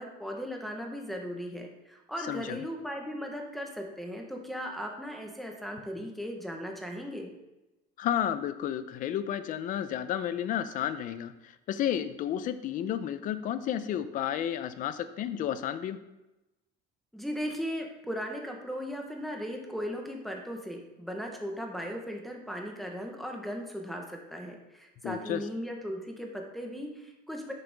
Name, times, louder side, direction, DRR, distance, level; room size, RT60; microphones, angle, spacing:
voice 1, 0.0-7.3 17.1-27.5, equal, ahead, 2 dB, 1.1 m, -37 dB
voice 2, 2.3-2.6 8.0-16.0 25.0-25.4, left 10 dB, 45° left, 12 dB, 0.6 m, -32 dB
10.0 x 6.8 x 3.5 m, 0.98 s
cardioid pair, 160°, 19 cm